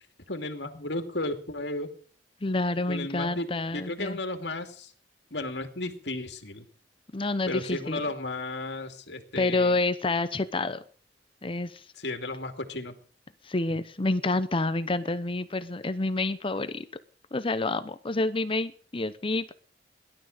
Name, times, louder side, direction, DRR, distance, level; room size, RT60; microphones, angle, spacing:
voice 1, 0.3-1.9 2.9-4.9 5.3-6.6 7.5-9.8 12.0-12.9, left 2 dB, 70° left, 6 dB, 2.7 m, -34 dB
voice 2, 2.4-4.2 7.1-8.0 9.4-10.8 11.4-11.8 13.4-16.8 17.3-19.5, left 2 dB, 30° left, 12 dB, 0.8 m, -28 dB
17.5 x 12.0 x 6.6 m, 0.43 s
head